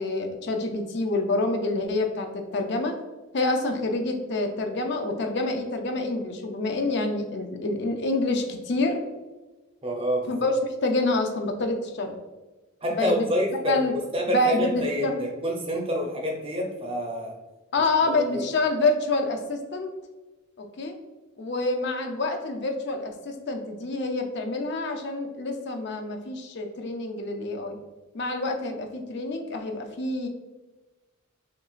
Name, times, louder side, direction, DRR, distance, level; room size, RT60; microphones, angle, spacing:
voice 1, 0.0-3.0 3.3-9.0 10.3-10.5 10.8-12.2 12.9-13.3 13.7-13.9 14.3-15.3 17.7-19.9 20.6-20.9 21.4-27.8 28.1-30.3, left 2 dB, 50° left, 4 dB, 0.5 m, -27 dB
voice 2, 9.8-10.3 12.8-13.7 14.1-17.3 18.3-18.4, equal, 25° right, 0 dB, 0.7 m, -27 dB
5.8 x 2.4 x 2.4 m, 1.2 s
head